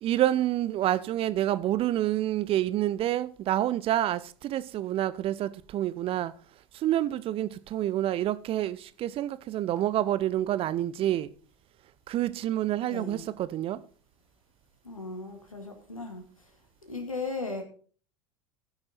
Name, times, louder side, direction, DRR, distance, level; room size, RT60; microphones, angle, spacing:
voice 1, 0.0-6.3 6.7-11.3 12.1-13.8, right 13 dB, 35° right, 0.5 m, -28 dB
voice 2, 12.8-13.3 14.8-16.2 16.8-17.6, left 3 dB, 85° left, 2.0 m, -36 dB
15.5 x 6.2 x 4.1 m
figure-of-eight pair, 80°, 17 cm